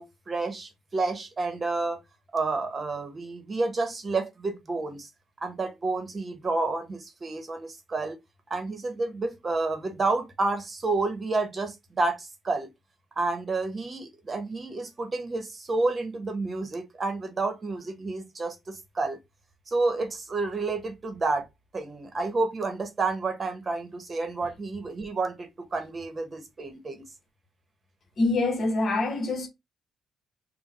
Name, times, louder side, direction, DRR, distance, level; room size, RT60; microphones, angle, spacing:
voice 1, 0.0-2.0 2.3-5.1 5.4-8.2 8.5-12.7 13.2-19.2 19.7-21.4 21.7-27.0, right 3 dB, 35° right, 1.0 m, -30 dB
voice 2, 28.2-29.5, left 2 dB, 50° left, 1.1 m, -25 dB
3.6 x 2.2 x 4.2 m
cardioid pair, 90°, 0 cm